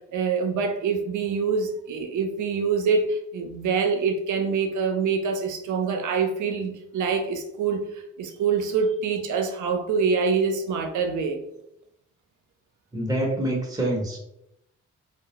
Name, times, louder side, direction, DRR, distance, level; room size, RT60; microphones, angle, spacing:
voice 1, 0.1-11.4, right 5 dB, 70° right, 5 dB, 0.5 m, -25 dB
voice 2, 12.9-14.2, right 1 dB, 10° right, -2 dB, 0.7 m, -26 dB
2.2 x 2.0 x 2.9 m, 0.81 s
supercardioid pair, 50°, 31 cm